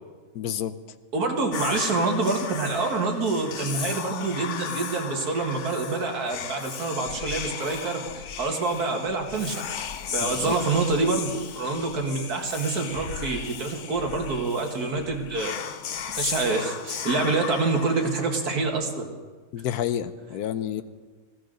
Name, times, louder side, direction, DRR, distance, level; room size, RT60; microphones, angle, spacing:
voice 1, 0.3-0.7 10.2-10.5 19.5-20.8, left 10 dB, 90° left, 13 dB, 1.2 m, -29 dB
voice 2, 1.1-9.6 10.1-15.5 16.1-19.1, right 3 dB, 80° right, 3 dB, 2.2 m, -26 dB
Whispering, 1.5-18.6, left 8 dB, 60° left, 1.0 m, -35 dB
19.5 x 15.5 x 3.9 m, 1.4 s
omnidirectional pair, 1.6 m